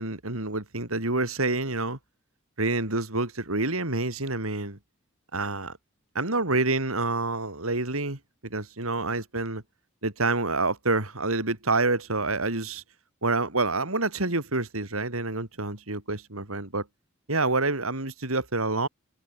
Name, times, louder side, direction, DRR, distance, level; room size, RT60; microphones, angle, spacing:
voice 1, 0.0-2.0 2.6-4.8 5.3-5.8 6.1-9.6 10.0-12.8 13.2-16.9 17.3-18.9, right 3 dB, 80° right, 4.1 m, -27 dB
head